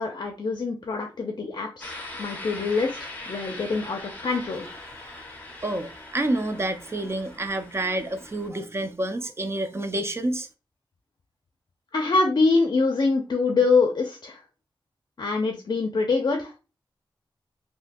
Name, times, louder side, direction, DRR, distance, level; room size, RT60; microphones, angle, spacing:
voice 1, 0.0-4.7 11.9-14.4 15.2-16.5, left 4 dB, 55° left, 0.5 m, -24 dB
sound 1, 1.8-8.5, left 2 dB, 20° left, 1.0 m, -41 dB
voice 2, 5.6-10.5, right 1 dB, 30° right, 0.5 m, -28 dB
3.5 x 2.7 x 2.5 m
wide cardioid pair, 90°, 9 cm